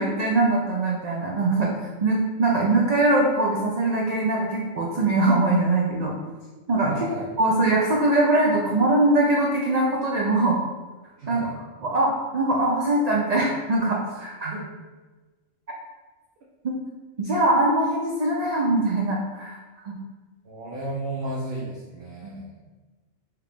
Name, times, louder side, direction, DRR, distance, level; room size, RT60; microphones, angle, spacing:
voice 1, 0.0-1.7 2.0-6.2 6.7-7.1 7.4-10.6 11.3-11.4 11.8-14.5 17.2-19.6 19.8-20.0 22.2-22.4, right 2 dB, 70° right, -2 dB, 0.3 m, -22 dB
voice 2, 6.9-7.3 11.2-11.5 14.4-14.7 17.3-17.4 20.4-22.5, right 2 dB, 55° right, -4 dB, 0.7 m, -33 dB
4.4 x 2.4 x 3.4 m, 1.3 s
omnidirectional pair, 1.3 m